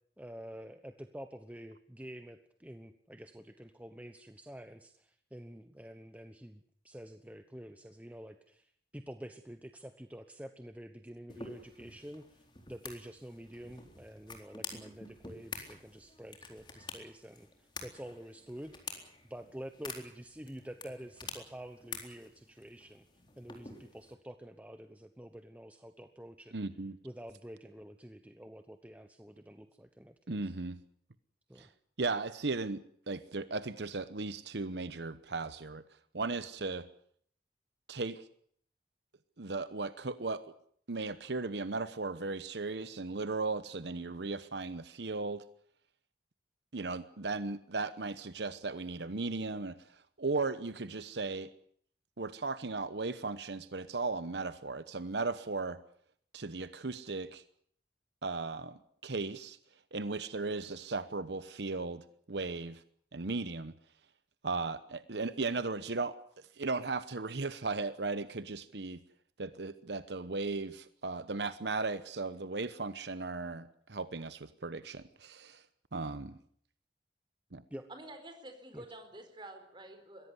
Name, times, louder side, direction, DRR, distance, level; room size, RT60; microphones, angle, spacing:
voice 1, 0.2-18.9 19.3-23.1 23.4-26.6 27.0-30.5 31.5-31.7 77.7-77.9 78.7-78.8, equal, 10° right, 8 dB, 1.0 m, -48 dB
sound 1, 11.3-24.1, left 4 dB, 25° left, 4.0 m, -48 dB
voice 2, 26.5-27.0 30.3-30.8 31.6-31.7 32.0-35.8 36.1-36.9 37.9-38.2 39.4-40.4 40.9-45.4 46.7-49.8 50.2-51.5 52.2-55.8 56.3-57.4 58.2-59.6 59.9-62.8 63.1-63.7 64.4-66.1 66.6-69.0 69.4-75.6 75.9-76.4 77.5-77.6, right 3 dB, 70° right, 13 dB, 1.0 m, -36 dB
voice 3, 77.9-80.3, right 1 dB, 25° right, 7 dB, 4.3 m, -49 dB
22.5 x 16.5 x 9.8 m, 0.64 s
head